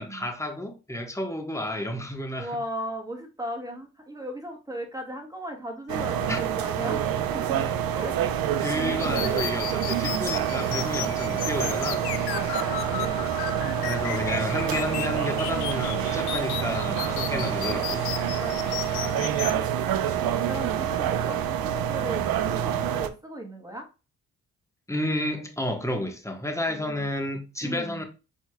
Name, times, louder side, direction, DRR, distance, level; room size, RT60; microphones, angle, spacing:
voice 1, 0.0-2.5 6.3-6.4 8.6-12.1 13.9-18.1 24.9-28.0, left 1 dB, 5° left, 1.2 m, -31 dB
voice 2, 2.3-7.6 7.9-8.4 8.7-9.6 12.3-13.1 17.3-17.8 18.3-23.9 26.7-27.1 27.6-28.0, right 1 dB, 10° right, 1.7 m, -37 dB
sound 1, 5.9-23.1, right 9 dB, 65° right, 0.6 m, -27 dB
sound 2, 9.0-19.5, left 11 dB, 75° left, 0.6 m, -35 dB
4.6 x 4.3 x 2.2 m
supercardioid pair, 45°, 39 cm